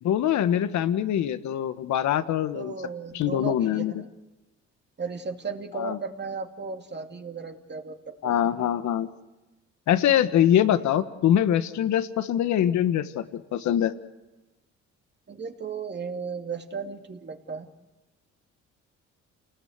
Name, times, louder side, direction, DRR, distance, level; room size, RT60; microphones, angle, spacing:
voice 1, 0.0-2.7 3.1-3.9 5.7-6.0 8.2-9.1 9.9-13.9, left 10 dB, 75° left, 11 dB, 1.5 m, -23 dB
voice 2, 2.5-4.1 5.0-8.5 10.0-10.1 15.3-17.7, right 5 dB, 35° right, 5 dB, 2.6 m, -35 dB
29.0 x 20.0 x 8.2 m, 1.1 s
cardioid pair, 75°, 29 cm